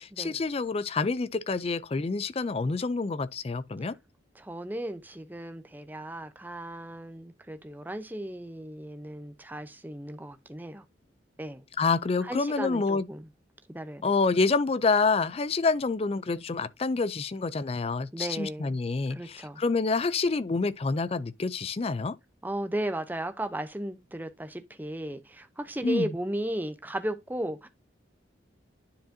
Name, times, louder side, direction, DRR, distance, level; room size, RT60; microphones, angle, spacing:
voice 1, 0.0-3.9 11.8-13.1 14.0-22.2 25.8-26.1, left 4 dB, 30° left, 0.4 m, -27 dB
voice 2, 4.3-10.8 11.4-11.6 12.2-13.2 13.7-14.0 18.1-18.8 19.1-19.6 22.4-27.7, right 1 dB, 10° right, 0.7 m, -35 dB
10.5 x 4.8 x 2.7 m
head